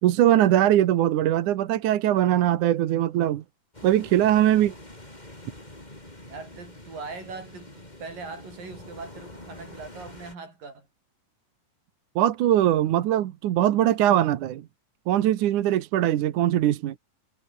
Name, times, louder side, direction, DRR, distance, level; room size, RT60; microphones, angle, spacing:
voice 1, 0.0-3.4 3.8-4.7 12.2-14.7 15.1-17.0, right 12 dB, 70° right, 2.6 m, -21 dB
sound 1, 3.7-10.4, left 1 dB, 10° left, 4.7 m, -45 dB
voice 2, 6.2-10.9, right 4 dB, 85° right, 8.8 m, -40 dB
omnidirectional pair, 3.9 m